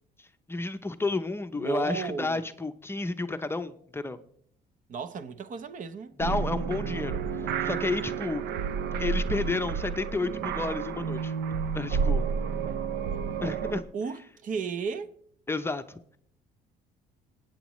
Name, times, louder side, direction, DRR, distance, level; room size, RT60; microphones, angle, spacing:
voice 1, 0.2-4.2 6.2-8.5 9.0-11.3 11.7-12.2 13.4-13.9 15.5-16.2, left 3 dB, 15° left, 0.6 m, -31 dB
voice 2, 1.5-2.5 4.9-6.2 13.9-15.1, right 5 dB, 50° right, 0.8 m, -34 dB
sound 1, 6.2-13.8, right 6 dB, 85° right, 0.7 m, -30 dB
26.0 x 9.1 x 3.1 m
cardioid pair, 110°, 17 cm